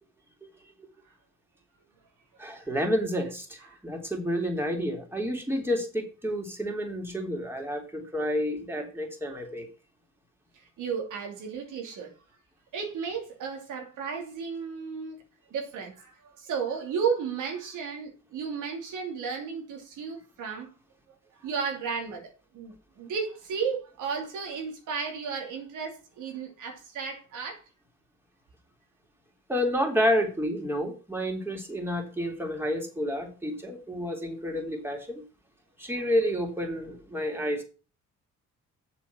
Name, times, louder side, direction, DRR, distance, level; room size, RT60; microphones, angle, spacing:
voice 1, 2.4-9.7 29.5-35.2 35.8-37.6, equal, 5° right, 3.4 m, -30 dB
voice 2, 10.5-12.1 12.7-15.2 15.5-20.7 21.4-27.6, right 6 dB, 85° right, 2.8 m, -34 dB
7.6 x 6.8 x 6.2 m
cardioid pair, 90°, 30 cm